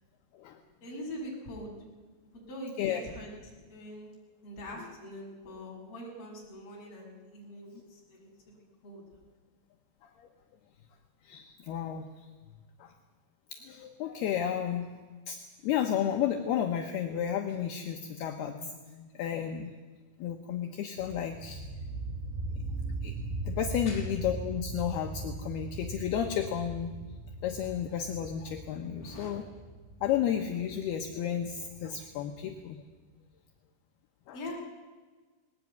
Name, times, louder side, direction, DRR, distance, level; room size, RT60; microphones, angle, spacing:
voice 1, 0.8-1.7 2.3-4.1 4.4-9.0 23.9-24.0 29.0-29.4 34.3-34.5, left 1 dB, 30° left, -5 dB, 7.3 m, -43 dB
voice 2, 11.2-12.1 12.8-12.9 13.5-14.9 15.3-19.7 20.2-21.6 23.0-23.1 23.5-27.0 27.4-29.4 30.0-32.8 34.3-34.4, left 9 dB, 70° left, 4 dB, 2.8 m, -32 dB
sound 1, 21.0-32.5, right 2 dB, 65° right, 5.4 m, -39 dB
20.0 x 18.0 x 9.5 m, 1.4 s
omnidirectional pair, 5.3 m